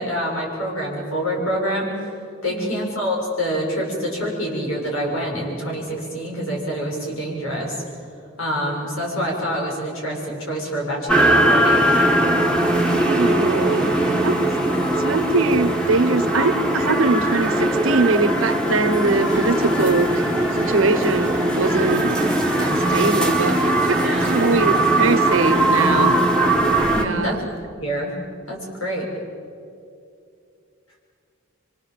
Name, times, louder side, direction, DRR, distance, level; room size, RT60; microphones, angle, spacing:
voice 1, 0.0-1.9 2.4-7.8 8.4-11.9 24.0-24.4 26.9-27.4 27.8-28.2 28.5-29.1, equal, 85° left, -2 dB, 7.0 m, -26 dB
voice 2, 2.5-2.9 12.9-13.9 14.2-14.3 15.0-20.3 20.6-22.2 22.6-26.2 27.0-27.4, right 3 dB, 75° right, 10 dB, 1.2 m, -22 dB
sound 1, 11.1-27.1, right 1 dB, 5° left, 1.5 m, -20 dB
sound 2, 19.0-27.7, right 1 dB, 15° right, 1.3 m, -34 dB
25.5 x 24.5 x 7.5 m, 2.5 s
head